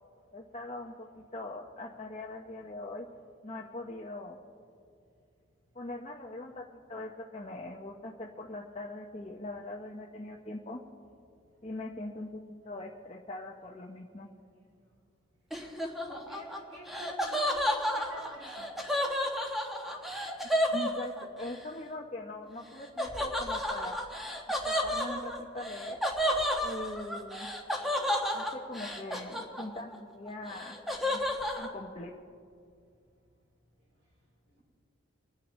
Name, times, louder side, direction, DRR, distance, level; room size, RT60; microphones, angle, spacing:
voice 1, 0.3-3.1 3.4-4.4 5.7-10.8 11.6-12.4 12.6-14.3 20.7-24.0 24.7-26.0 26.6-27.5 28.3-31.2 31.6-32.1, left 2 dB, 30° left, -1 dB, 0.7 m, -41 dB
Laughter, 15.5-21.5 23.0-29.9 30.3-31.7, equal, ahead, 1.1 m, -32 dB
voice 2, 16.1-17.4 17.9-18.6, equal, 55° right, -2 dB, 3.4 m, -48 dB
28.5 x 10.0 x 3.1 m, 2.4 s
head